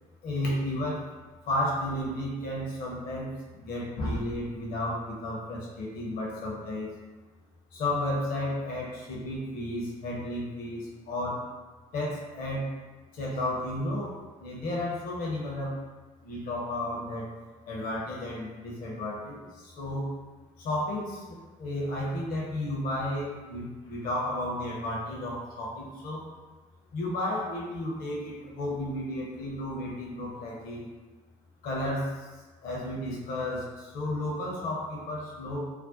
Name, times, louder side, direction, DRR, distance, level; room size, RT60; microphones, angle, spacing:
voice 1, 0.2-1.0 1.4-6.9 7.7-11.5 11.9-12.7 13.1-14.1 14.4-15.8 16.2-17.3 17.7-20.1 20.6-26.2 26.9-30.9 31.6-32.3 32.6-35.6, left 1 dB, 55° left, -4 dB, 0.7 m, -33 dB
2.5 x 2.1 x 2.4 m, 1.3 s
figure-of-eight pair, 50°, 18 cm